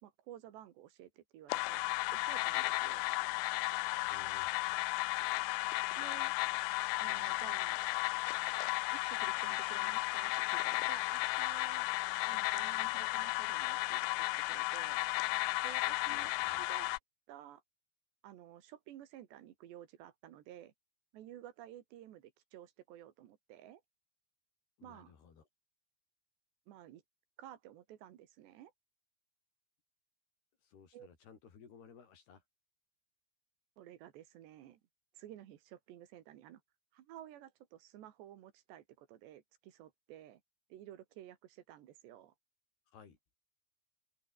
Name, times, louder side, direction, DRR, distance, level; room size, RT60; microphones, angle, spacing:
voice 1, 0.0-1.8 2.1-3.0 6.0-6.3 7.0-7.8 8.9-11.9 12.3-15.0 15.6-16.9 17.3-17.6 18.2-20.7 21.1-23.8 24.8-25.1 26.7-27.0 27.4-28.7 30.9-31.1 33.8-34.8 35.1-36.6 36.9-40.4 40.7-42.3, right 12 dB, 80° right, 3.9 m, -53 dB
sound 1, 1.5-17.0, left 23 dB, 85° left, 2.7 m, -34 dB
voice 2, 4.0-4.8 15.9-16.7 24.8-25.5 30.6-32.4 42.9-43.2, left 6 dB, 65° left, 6.1 m, -58 dB
open air
omnidirectional pair, 4.9 m